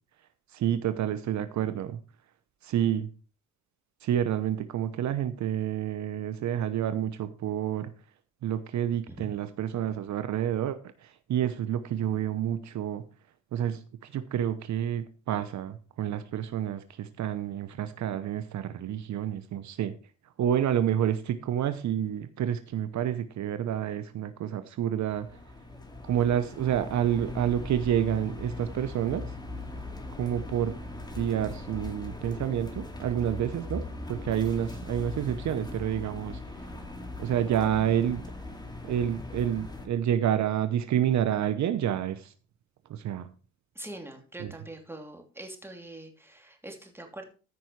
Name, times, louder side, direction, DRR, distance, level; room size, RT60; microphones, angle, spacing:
voice 1, 0.5-2.0 2.6-3.1 4.0-7.9 8.4-13.0 13.5-19.9 20.4-25.3 26.0-29.3 30.2-30.7 31.2-33.8 34.1-36.4 37.2-38.2 38.8-42.3 42.9-43.3 44.4-44.5, right 10 dB, 65° right, 11 dB, 0.9 m, -29 dB
sound 1, 25.1-39.9, left 2 dB, 15° left, 2.3 m, -40 dB
voice 2, 43.7-47.2, right 1 dB, 10° right, 3 dB, 3.0 m, -43 dB
14.0 x 5.5 x 4.7 m, 0.35 s
cardioid pair, 90°, 30 cm